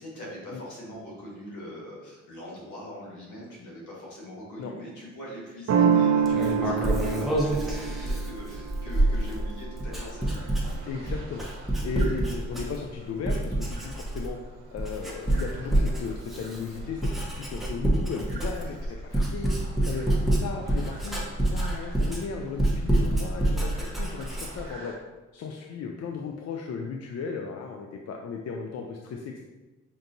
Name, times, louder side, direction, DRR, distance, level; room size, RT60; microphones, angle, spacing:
voice 1, 0.0-10.4 18.7-18.8, equal, 80° left, -4 dB, 1.4 m, -42 dB
sound 1, 5.7-11.2, right 7 dB, 60° right, 0.5 m, -27 dB
Writing, 6.3-13.0 13.2-14.4 14.8-24.7, right 1 dB, ahead, 0.9 m, -27 dB
sound 2, 9.9-25.0, right 2 dB, 40° right, 1.3 m, -49 dB
voice 2, 10.9-11.4 11.8-14.4 14.7-19.6 19.8-21.2 21.5-24.9 25.3-29.4, left 5 dB, 60° left, 2 dB, 0.4 m, -36 dB
5.2 x 2.6 x 2.6 m, 1.2 s
cardioid pair, 65°, 30 cm